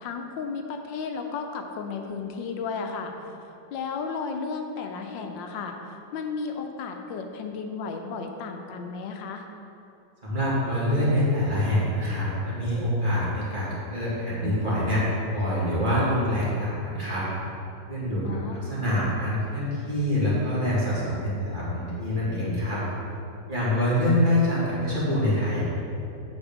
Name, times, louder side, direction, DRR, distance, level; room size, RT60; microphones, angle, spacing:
voice 1, 0.0-3.1 3.7-9.4 18.2-18.6, left 5 dB, 85° left, 4 dB, 1.4 m, -33 dB
voice 2, 10.2-15.1 15.3-17.2 17.9-22.8 23.5-25.6, left 1 dB, 25° right, -9 dB, 2.1 m, -25 dB
8.0 x 6.6 x 3.5 m, 2.7 s
omnidirectional pair, 2.0 m